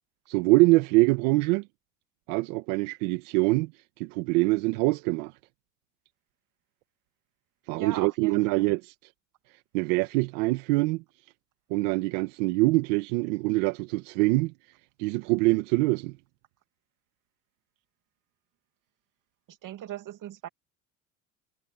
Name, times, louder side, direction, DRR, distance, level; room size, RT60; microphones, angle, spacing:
voice 1, 0.3-1.6 2.3-3.7 4.0-5.3 7.7-8.9 9.7-11.0 11.7-14.5 15.0-16.2, right 22 dB, 80° right, 1.5 m, -24 dB
voice 2, 7.7-8.7 19.6-20.5, right 11 dB, 55° right, 2.4 m, -38 dB
supercardioid pair, 80°, 37 cm